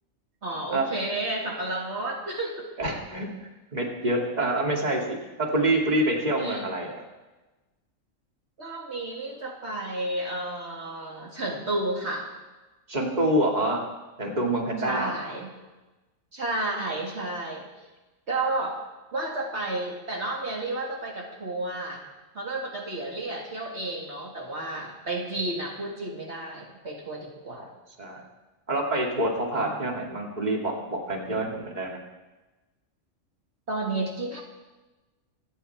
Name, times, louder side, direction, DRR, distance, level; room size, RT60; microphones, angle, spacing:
voice 1, 0.4-2.7 6.4-6.6 8.6-12.3 14.8-15.5 16.3-17.7 18.3-18.8 19.1-22.0 22.3-27.7 29.6-29.8 33.7-34.4, right 2 dB, 55° right, -1 dB, 2.2 m, -31 dB
voice 2, 2.8-3.3 3.7-7.0 12.9-13.8 14.2-15.1 28.0-28.2 28.7-32.0, right 1 dB, 35° right, 0 dB, 2.3 m, -26 dB
27.0 x 9.3 x 4.5 m, 1.1 s
omnidirectional pair, 1.3 m